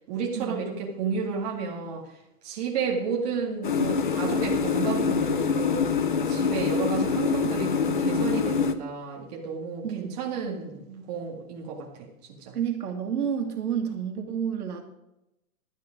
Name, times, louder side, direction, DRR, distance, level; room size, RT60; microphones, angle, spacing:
voice 1, 0.1-2.2 2.4-5.9 6.3-12.1 12.4-12.5, right 5 dB, 25° right, -1 dB, 2.1 m, -32 dB
sound 1, 3.6-8.7, left 5 dB, 35° left, 0.5 m, -25 dB
voice 2, 9.8-10.3 12.5-14.8, right 8 dB, 80° right, 5 dB, 2.2 m, -30 dB
12.0 x 8.9 x 5.1 m, 0.87 s
hypercardioid pair, 180°, 45 cm